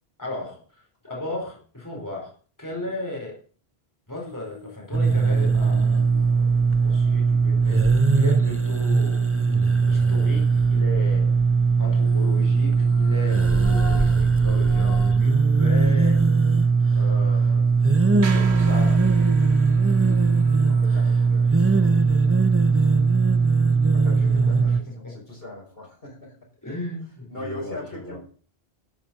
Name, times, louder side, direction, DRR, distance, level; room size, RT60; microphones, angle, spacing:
voice 1, 0.2-0.6 1.0-3.4 4.1-7.8 8.1-9.3 9.8-11.4 11.8-16.2 16.9-17.7 18.1-19.1 24.2-24.8 25.0-25.2 26.6-28.2, left 2 dB, 15° left, -2 dB, 4.8 m, -35 dB
sound 1, 4.1-8.4 11.9-15.3 15.7-15.8 18.6-21.5 21.9-22.0, left 3 dB, 40° left, 2.0 m, -42 dB
sound 2, 4.9-24.8, right 4 dB, 15° right, 0.6 m, -19 dB
sound 3, 18.2-22.5, right 4 dB, 80° right, 1.5 m, -38 dB
voice 2, 20.6-22.8 23.9-26.4 27.3-28.2, left 1 dB, 60° left, -1 dB, 6.0 m, -40 dB
12.5 x 8.9 x 7.8 m, 0.42 s
omnidirectional pair, 1.1 m